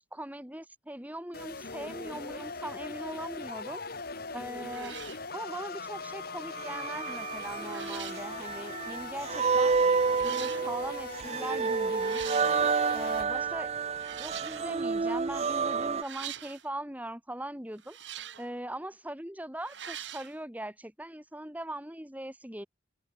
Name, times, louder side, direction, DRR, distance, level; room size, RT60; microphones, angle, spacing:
voice 1, 0.1-3.8 4.3-5.0 5.3-9.8 10.2-12.3 12.9-13.7 14.2-18.0 18.4-22.7, right 1 dB, 10° right, 2.0 m, -40 dB
sound 1, 1.3-13.2, left 4 dB, 55° left, 2.0 m, -41 dB
sound 2, 4.1-4.3 4.6-5.3 6.9-7.3 7.6-8.3 9.3-9.4 10.1-10.7 11.9-12.6 13.9-14.7 16.0-16.7 17.8-18.5 19.6-20.3, right 10 dB, 75° right, 2.6 m, -43 dB
sound 3, 6.6-16.0, right 5 dB, 35° right, 0.4 m, -30 dB
head